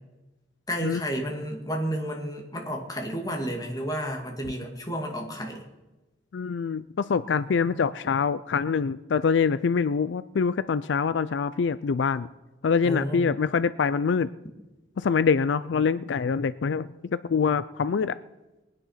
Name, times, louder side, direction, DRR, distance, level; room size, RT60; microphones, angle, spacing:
voice 1, 0.7-5.6 12.8-13.2, equal, 20° left, 1 dB, 2.4 m, -31 dB
voice 2, 6.3-12.3 12.6-14.3 15.0-18.2, left 5 dB, 75° left, 16 dB, 0.4 m, -25 dB
21.0 x 9.8 x 5.8 m, 1.1 s
head